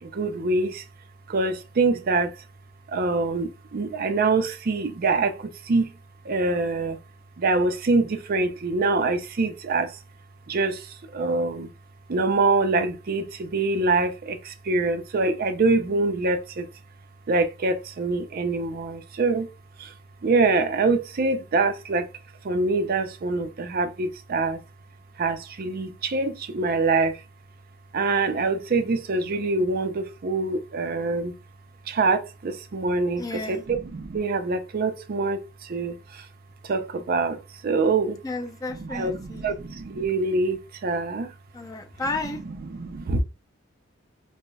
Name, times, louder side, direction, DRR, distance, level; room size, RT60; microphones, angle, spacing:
voice 1, 0.0-0.8 1.3-2.4 2.9-5.9 6.2-7.0 7.4-10.0 10.5-11.7 12.1-16.7 17.3-19.5 19.8-19.9 20.2-22.1 22.4-24.6 25.2-27.2 27.9-31.3 31.9-36.3 36.6-38.2 38.8-41.3 42.5-43.2, right 3 dB, 50° right, 0.5 m, -25 dB
voice 2, 33.2-33.6 38.2-39.5 41.5-42.4, left 2 dB, 20° left, 0.5 m, -32 dB
5.1 x 2.1 x 2.2 m
head